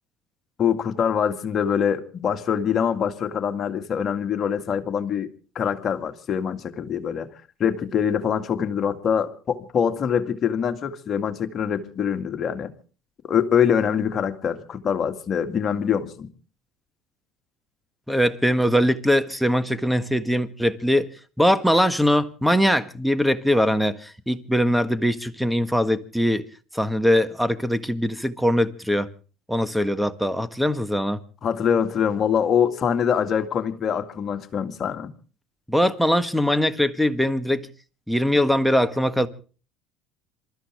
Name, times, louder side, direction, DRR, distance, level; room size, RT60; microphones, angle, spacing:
voice 1, 0.6-5.3 5.6-7.3 7.6-12.7 13.2-16.3 31.4-35.1, left 8 dB, 45° left, 2.1 m, -24 dB
voice 2, 18.1-21.1 21.4-26.4 26.7-29.1 29.5-31.2 35.7-37.7 38.1-39.3, equal, ahead, 1.5 m, -21 dB
27.5 x 13.5 x 3.5 m
hypercardioid pair, 75°, 0 cm